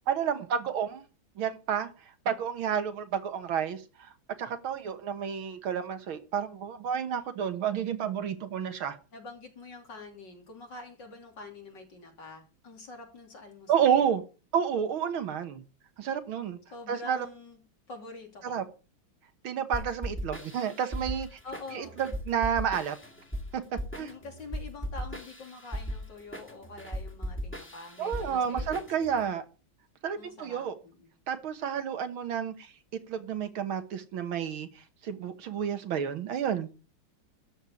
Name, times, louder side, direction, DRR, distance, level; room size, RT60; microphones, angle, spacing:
voice 1, 0.1-1.0 1.4-1.9 2.3-3.8 4.4-9.0 13.7-14.2 14.5-15.6 16.0-16.6 16.9-17.3 18.4-18.6 19.4-21.4 21.7-23.0 23.5-23.6 24.0-24.1 28.0-29.4 30.0-30.8 31.3-32.7 33.1-34.7 35.0-36.7, right 8 dB, 90° right, 2.2 m, -30 dB
voice 2, 9.1-14.0 16.7-17.6 17.9-18.7 21.4-22.0 24.0-29.3 30.2-31.1, left 3 dB, 60° left, 3.8 m, -46 dB
sound 1, 19.7-29.3, equal, 5° left, 2.0 m, -38 dB
13.0 x 4.6 x 8.4 m
omnidirectional pair, 2.2 m